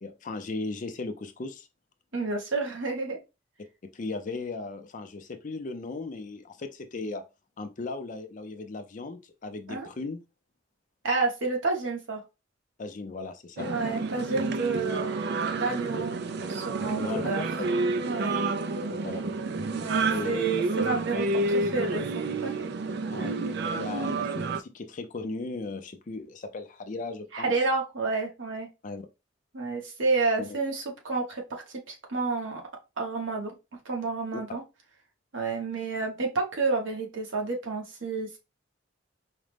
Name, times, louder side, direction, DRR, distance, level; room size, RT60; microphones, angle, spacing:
voice 1, 0.0-1.7 3.9-7.2 7.6-10.2 12.8-13.7 17.0-17.2 19.0-19.2 20.1-20.4 21.1-21.2 23.1-23.4 23.7-27.5 28.8-29.1 30.4-30.6 34.3-34.4, left 3 dB, 40° left, 0.4 m, -37 dB
voice 2, 2.1-3.2 9.7-9.9 11.0-12.2 13.7-16.2 16.5-17.4 18.1-18.4 19.7-21.3 21.7-22.7 24.0-24.2 27.3-28.7 29.5-32.6 33.0-33.5 33.8-34.6 35.3-38.4, right 3 dB, 80° right, 1.1 m, -30 dB
sound 1, 13.6-24.6, right 3 dB, 55° right, 0.4 m, -29 dB
4.9 x 2.1 x 3.3 m
head